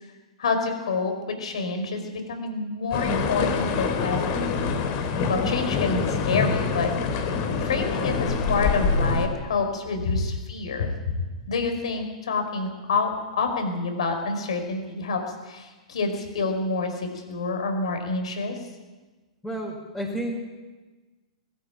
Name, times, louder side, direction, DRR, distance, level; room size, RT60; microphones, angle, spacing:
voice 1, 0.4-4.5 5.3-6.9 7.2-15.2 15.5-18.5, left 4 dB, 65° left, 5 dB, 5.0 m, -28 dB
sound 1, 2.9-9.3, left 4 dB, 45° left, 3.4 m, -25 dB
voice 2, 19.4-20.3, right 1 dB, 5° left, -5 dB, 5.4 m, -31 dB
21.0 x 13.5 x 9.0 m, 1.3 s
figure-of-eight pair, 105°, 3 cm